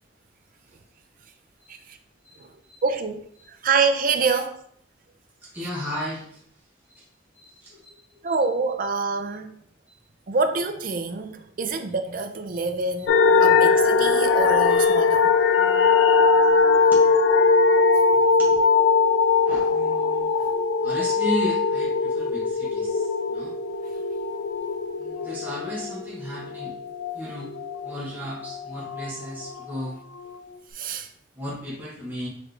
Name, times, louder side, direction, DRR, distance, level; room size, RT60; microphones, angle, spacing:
voice 1, 2.8-4.6 5.6-5.7 8.2-9.6 10.3-15.3 20.4-20.5 30.7-31.1, right 4 dB, 45° right, 0.5 m, -26 dB
voice 2, 5.4-6.4 6.9-7.1 7.3-7.9 8.2-8.3 16.7-17.1 18.1-18.6 19.4-20.3 20.8-23.5 25.0-26.7 27.1-27.5 27.8-30.0 31.3-32.3, equal, 10° right, 1.1 m, -34 dB
sound 1, 13.1-27.9 28.2-29.7 30.2-30.3, left 4 dB, 75° left, 0.3 m, -20 dB
4.1 x 3.1 x 3.3 m
head